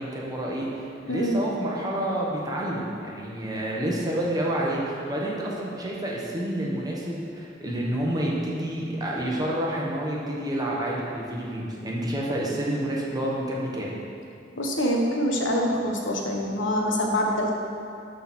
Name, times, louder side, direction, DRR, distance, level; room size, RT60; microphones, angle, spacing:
voice 1, 0.0-13.9, right 1 dB, 20° right, -4 dB, 1.4 m, -29 dB
voice 2, 1.1-1.4 14.6-17.5, equal, 75° left, 0 dB, 1.3 m, -25 dB
11.5 x 4.4 x 6.3 m, 2.7 s
head